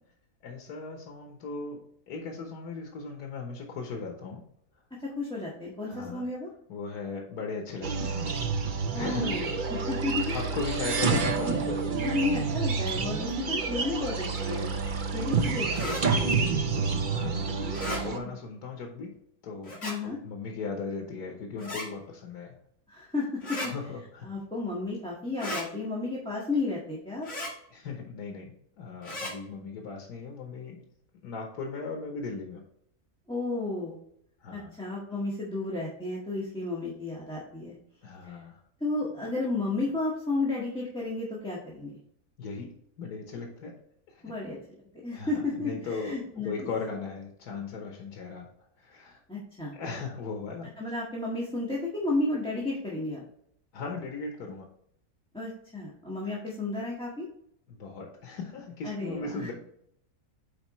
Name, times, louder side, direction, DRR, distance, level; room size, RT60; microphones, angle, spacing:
voice 1, 0.4-1.8 2.1-4.4 5.9-6.2 6.7-8.2 8.7-9.9 10.3-12.0 17.1-19.1 19.4-22.5 23.6-24.3 27.7-30.8 31.2-32.6 34.4-34.7 38.0-38.6 42.4-42.7 43.0-43.7 44.1-44.3 45.1-48.5 48.8-49.2 49.7-50.7 53.7-54.7 57.7-59.5, left 4 dB, 90° left, 1 dB, 1.6 m, -38 dB
voice 2, 5.0-6.5 8.9-10.5 11.0-11.6 12.0-14.8 15.1-16.4 19.8-20.2 22.9-23.7 24.2-27.3 33.3-34.0 34.5-37.7 38.2-38.4 38.8-42.0 44.2-44.6 45.0-46.7 49.3-49.7 50.8-53.2 55.3-57.2 58.8-59.5, left 2 dB, 5° left, -5 dB, 1.4 m, -32 dB
sound 1, 7.8-18.2, right 4 dB, 45° right, 0.7 m, -29 dB
sound 2, 15.7-16.0 17.7-18.0 19.6-20.0 21.6-21.9 23.4-23.7 25.4-25.7 27.2-27.5 29.0-29.3, left 1 dB, 50° left, 2.6 m, -35 dB
8.6 x 4.6 x 3.1 m, 0.71 s
omnidirectional pair, 1.6 m